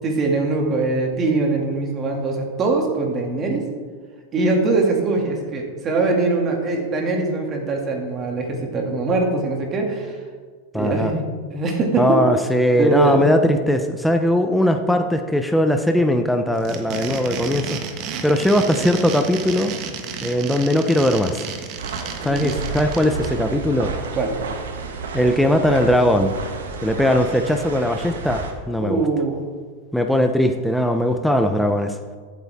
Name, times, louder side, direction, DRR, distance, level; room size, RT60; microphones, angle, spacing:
voice 1, 0.0-3.6 4.3-10.2 10.7-12.2 12.8-13.3 22.2-22.6 24.2-24.3 28.8-29.4, right 3 dB, 30° right, 1 dB, 2.3 m, -22 dB
voice 2, 10.7-11.1 12.0-17.8 18.2-19.7 20.2-21.4 22.2-23.9 25.1-26.3 26.8-29.0 29.9-31.9, left 1 dB, ahead, 5 dB, 0.6 m, -19 dB
sound 1, 16.5-23.3, right 7 dB, 45° right, 1.3 m, -32 dB
sound 2, 21.8-28.5, right 4 dB, 85° right, 1.3 m, -31 dB
13.5 x 8.3 x 3.6 m, 1.5 s
hypercardioid pair, 125°, 0 cm